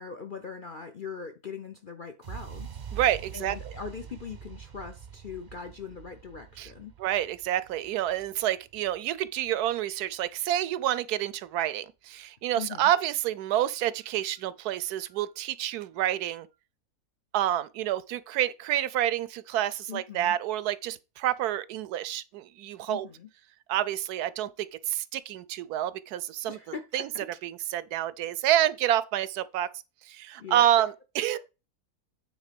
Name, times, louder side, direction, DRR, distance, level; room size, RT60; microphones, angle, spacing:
voice 1, 0.0-2.8 3.3-6.9 12.6-12.9 19.9-20.4 22.9-23.3 26.4-27.3 30.4-30.7, left 6 dB, 50° left, 0.6 m, -41 dB
sound 1, 2.2-10.2, right 8 dB, 55° right, 0.5 m, -45 dB
voice 2, 2.9-3.7 6.6-6.7 7.0-16.5 17.3-23.1 23.7-26.6 26.9-27.1 27.4-29.7 30.0-31.4, right 12 dB, 75° right, 1.1 m, -28 dB
8.9 x 3.7 x 5.1 m
omnidirectional pair, 1.7 m